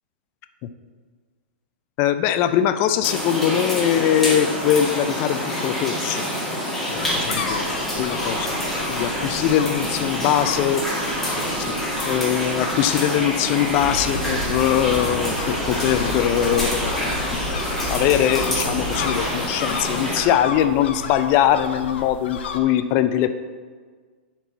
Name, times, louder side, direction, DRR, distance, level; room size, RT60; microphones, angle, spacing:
voice 1, 2.0-6.3 6.9-7.7 8.0-8.6 8.9-10.9 12.0-17.2 17.9-23.3, left 10 dB, 35° left, 10 dB, 0.4 m, -21 dB
sound 1, 3.0-20.2, equal, ahead, 1.8 m, -26 dB
sound 2, 6.9-22.6, left 5 dB, 70° left, 0.7 m, -34 dB
sound 3, 13.7-19.3, right 1 dB, 60° right, 1.5 m, -33 dB
9.3 x 4.4 x 4.1 m, 1.5 s
hypercardioid pair, 135°, 6 cm